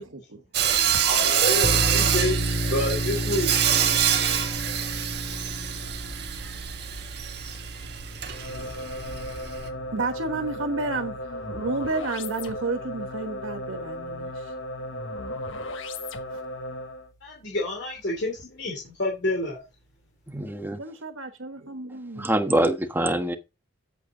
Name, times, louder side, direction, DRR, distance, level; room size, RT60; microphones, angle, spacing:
voice 1, 0.0-1.0 9.9-14.5 16.3-16.4 20.8-22.3, right 3 dB, 80° right, 1.3 m, -32 dB
Sawing, 0.5-9.7, right 9 dB, 55° right, 1.5 m, -26 dB
voice 2, 1.0-3.5 17.2-19.6, left 1 dB, 55° left, 2.9 m, -28 dB
sound 1, 1.6-12.9, equal, 15° left, 2.5 m, -33 dB
sound 2, 8.3-17.1, left 1 dB, 75° left, 1.3 m, -35 dB
voice 3, 20.3-20.8 22.2-23.4, right 1 dB, 10° right, 1.2 m, -24 dB
8.7 x 8.2 x 3.8 m
head